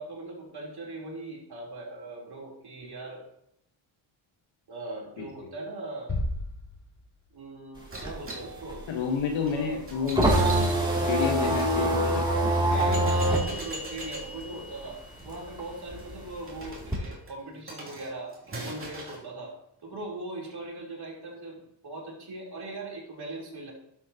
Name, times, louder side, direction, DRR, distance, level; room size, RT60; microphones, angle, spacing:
voice 1, 0.0-3.2 4.7-6.1 7.3-8.8 9.5-10.5 11.7-11.9 12.7-18.3 18.6-19.5 19.8-23.7, right 2 dB, 55° right, -3 dB, 3.8 m, -40 dB
voice 2, 5.2-5.5 8.9-10.7 11.0-13.0, left 6 dB, 80° left, 1 dB, 1.4 m, -31 dB
sound 1, 6.1-7.7, left 1 dB, 45° left, 2.9 m, -34 dB
sound 2, 7.8-14.9 15.2-17.0, right 1 dB, 10° right, 2.8 m, -25 dB
sound 3, 7.9-11.7 12.3-12.4 12.7-19.2, right 2 dB, 25° right, 2.8 m, -41 dB
11.5 x 7.3 x 2.9 m, 0.75 s
cardioid pair, 95°, 45 cm